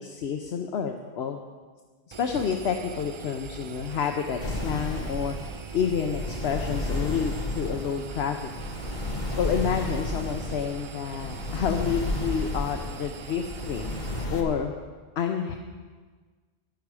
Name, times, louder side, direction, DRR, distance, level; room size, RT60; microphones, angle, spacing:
voice 1, 0.0-1.4 2.2-5.3 5.7-8.5 9.4-14.0 14.3-14.7 15.2-15.6, left 7 dB, 80° left, 4 dB, 1.0 m, -29 dB
Engine, 2.1-14.2, right 7 dB, 55° right, 0.3 m, -42 dB
sound 1, 4.4-14.4, left 2 dB, 45° left, 1.7 m, -32 dB
14.0 x 11.5 x 4.8 m, 1.5 s
omnidirectional pair, 1.1 m